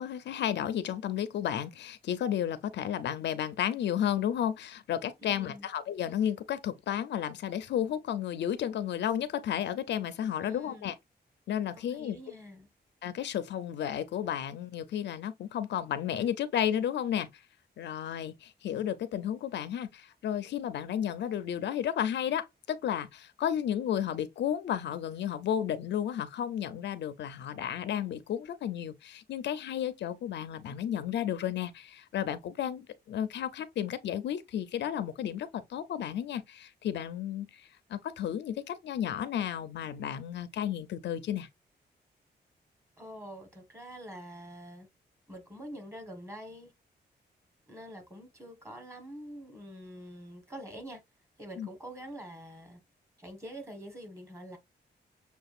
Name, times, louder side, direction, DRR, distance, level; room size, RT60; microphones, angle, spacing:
voice 1, 0.0-10.9 11.5-12.2 13.0-17.3 17.8-41.5 51.6-51.7, left 10 dB, 85° left, 0.6 m, -33 dB
voice 2, 5.2-5.7 10.4-10.9 11.7-12.7 43.0-44.9 45.3-46.7 47.7-51.0 51.4-52.8 53.2-54.6, equal, 15° right, 1.4 m, -45 dB
6.8 x 2.4 x 2.5 m
cardioid pair, 120°, 18 cm